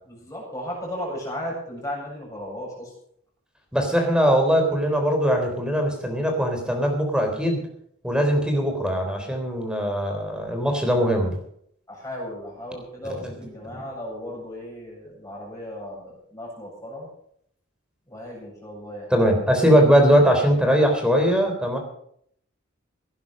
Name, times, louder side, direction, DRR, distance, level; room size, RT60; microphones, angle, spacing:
voice 1, 0.0-2.9 11.9-17.1 18.1-19.1, equal, 15° left, -2 dB, 7.7 m, -35 dB
voice 2, 3.7-7.6 8.0-11.4 13.2-13.3 13.7-13.8 19.1-21.8, equal, 5° right, 4 dB, 3.6 m, -20 dB
17.5 x 11.0 x 5.5 m, 0.66 s
head